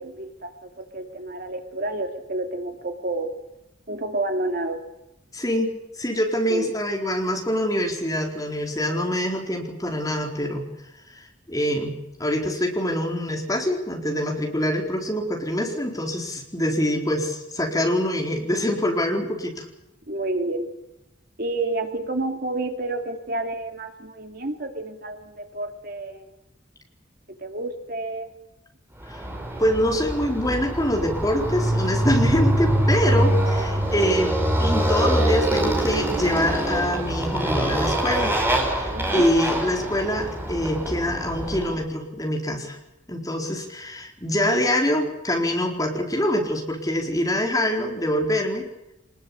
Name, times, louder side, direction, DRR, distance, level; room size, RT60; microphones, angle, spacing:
voice 1, 0.0-3.3 3.9-4.8 6.5-6.7 20.1-20.7 21.4-26.3 27.4-28.3 38.9-39.3, right 2 dB, 50° right, 5 dB, 2.4 m, -30 dB
voice 2, 5.3-10.6 11.5-11.9 12.2-19.7 29.1-29.2 29.6-38.3 38.7-42.8 43.1-48.7, equal, 20° left, 1 dB, 4.4 m, -25 dB
Motorcycle, 29.1-41.8, right 1 dB, 10° right, 4.5 m, -24 dB
25.5 x 20.5 x 8.7 m, 0.88 s
head